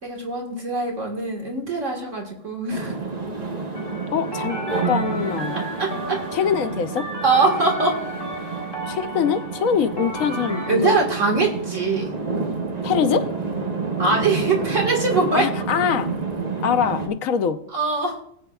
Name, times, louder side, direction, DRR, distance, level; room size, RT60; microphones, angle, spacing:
voice 1, 0.0-3.0 5.8-6.2 7.2-8.0 10.7-12.1 14.0-15.5 17.7-18.2, right 3 dB, 65° right, 0 dB, 2.0 m, -22 dB
sound 1, 2.7-17.1, right 4 dB, 30° right, 1.2 m, -29 dB
sound 2, 3.7-10.7, right 1 dB, 20° left, 1.4 m, -34 dB
voice 2, 4.1-4.6 4.9-5.6 6.3-7.1 8.9-11.0 12.8-13.3 15.3-16.1 16.6-17.6, left 7 dB, 90° left, 9 dB, 1.2 m, -23 dB
20.0 x 8.3 x 2.3 m, 0.65 s
omnidirectional pair, 1.4 m